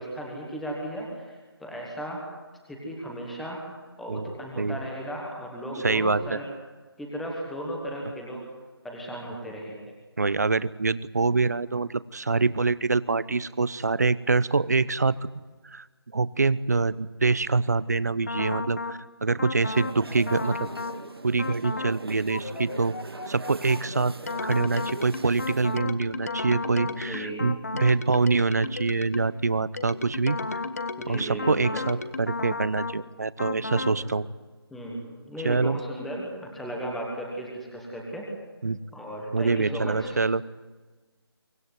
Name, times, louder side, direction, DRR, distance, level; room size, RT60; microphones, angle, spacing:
voice 1, 0.0-2.2 2.7-3.6 4.0-6.5 7.0-8.4 8.8-9.8 26.9-27.5 31.0-31.9 33.6-34.1 34.7-38.3 38.9-40.1, right 1 dB, ahead, -2 dB, 1.3 m, -35 dB
voice 2, 5.8-6.4 10.2-15.1 15.6-15.8 16.1-20.7 21.2-23.0 23.3-24.1 24.4-30.4 31.1-34.3 35.4-35.8 38.6-38.8 39.3-40.4, right 3 dB, 40° right, 18 dB, 0.8 m, -25 dB
sound 1, 18.3-19.0 19.4-20.0 20.3-21.0 21.4-22.0 22.3-29.4 29.8-33.0 33.4-34.0, left 3 dB, 35° left, 1.2 m, -34 dB
sound 2, 19.6-25.8, right 2 dB, 70° right, 1.9 m, -42 dB
24.5 x 16.0 x 9.3 m, 1.3 s
figure-of-eight pair, 170°, 13 cm